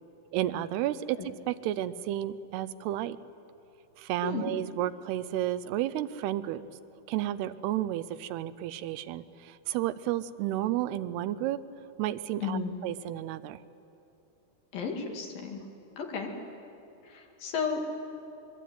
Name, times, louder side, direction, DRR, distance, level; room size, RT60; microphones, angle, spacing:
voice 1, 0.3-3.2 4.0-6.6 7.1-11.6 12.0-13.6, right 13 dB, 80° right, 14 dB, 2.7 m, -32 dB
voice 2, 12.4-12.8 14.7-15.6 16.0-16.3 17.0-17.8, left 5 dB, 60° left, 2 dB, 3.8 m, -33 dB
25.0 x 22.5 x 9.3 m, 2.9 s
omnidirectional pair, 4.7 m